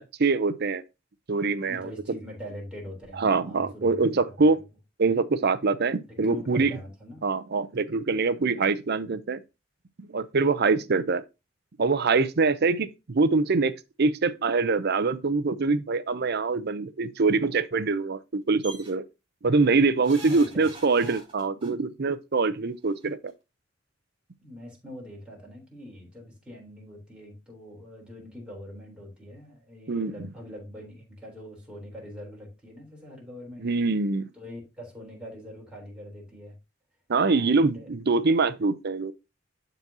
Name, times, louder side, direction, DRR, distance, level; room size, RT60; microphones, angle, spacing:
voice 1, 0.2-0.8 1.3-1.9 3.2-4.6 5.0-6.8 7.2-9.4 10.0-11.2 11.8-13.7 14.0-19.1 19.4-23.3 29.9-30.1 33.6-34.3 37.1-39.1, right 4 dB, 55° right, 0.6 m, -24 dB
voice 2, 1.6-4.0 4.3-4.6 6.1-7.3 20.1-20.7 24.4-33.7 34.3-36.6 37.3-37.9, equal, 5° right, 3.6 m, -43 dB
sound 1, 18.6-18.9 20.0-21.7 22.9-23.0 23.3-23.4, right 2 dB, 25° right, 3.6 m, -43 dB
12.0 x 4.0 x 2.8 m
head